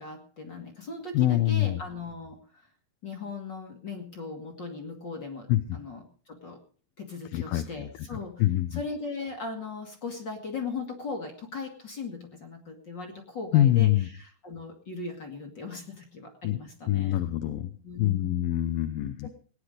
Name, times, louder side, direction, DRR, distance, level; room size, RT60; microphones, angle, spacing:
voice 1, 0.0-2.6 3.0-6.6 7.0-8.4 8.7-17.2 17.8-18.4 19.2-19.3, left 4 dB, 40° left, 5 dB, 1.8 m, -38 dB
voice 2, 1.1-1.8 5.5-5.8 7.3-7.9 8.4-8.8 13.5-14.1 16.4-16.6 16.9-17.7 18.0-19.3, left 14 dB, 85° left, 9 dB, 2.6 m, -25 dB
19.0 x 9.9 x 5.0 m, 0.43 s
omnidirectional pair, 4.0 m